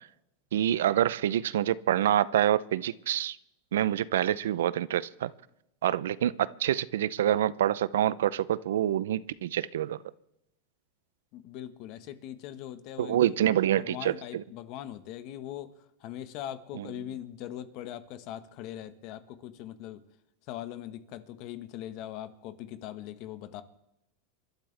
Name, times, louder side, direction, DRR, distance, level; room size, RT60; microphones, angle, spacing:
voice 1, 0.5-3.4 3.7-5.3 5.8-10.0 13.0-14.4 16.7-16.9, right 11 dB, 90° right, 18 dB, 0.6 m, -26 dB
voice 2, 11.3-13.5 13.8-15.7 16.0-20.0 20.5-23.6, left 12 dB, 50° left, 11 dB, 1.3 m, -41 dB
28.5 x 12.5 x 3.4 m, 0.83 s
supercardioid pair, 140°, 0 cm